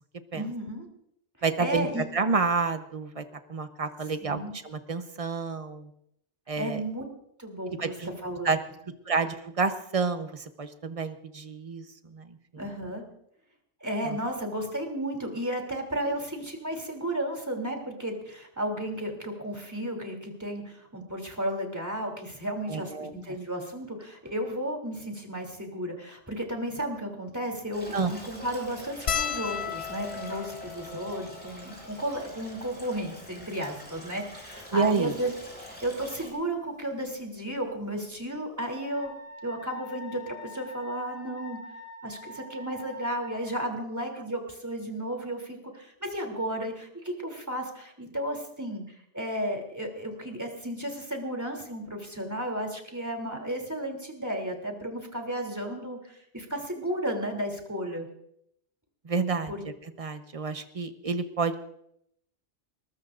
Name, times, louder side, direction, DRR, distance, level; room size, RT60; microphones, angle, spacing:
voice 1, 0.3-0.9 1.6-2.0 4.2-4.5 6.6-7.0 7.4-8.5 12.6-13.0 13.8-35.3 35.6-39.1 39.4-41.6 42.0-58.1 59.5-59.6, right 1 dB, 15° right, 2 dB, 3.2 m, -33 dB
voice 2, 1.4-3.2 3.5-5.9 6.5-6.8 7.7-8.1 8.4-8.6 9.1-11.8 12.1-12.2 14.1-14.2 16.0-16.1 22.7-23.1 27.9-28.1 34.7-35.1 59.0-59.5 60.0-61.6, right 4 dB, 30° right, 8 dB, 1.0 m, -29 dB
Stream, 27.7-36.3, equal, 10° left, 6.6 m, -45 dB
sound 1, 29.1-33.7 34.4-34.5 34.7-34.9 36.2-36.4 37.8-37.9 38.2-38.4, left 8 dB, 65° left, 1.0 m, -36 dB
Wind instrument woodwind instrument, 38.6-43.6, left 1 dB, 30° left, 8.1 m, -45 dB
21.5 x 20.5 x 2.6 m, 0.74 s
omnidirectional pair, 1.2 m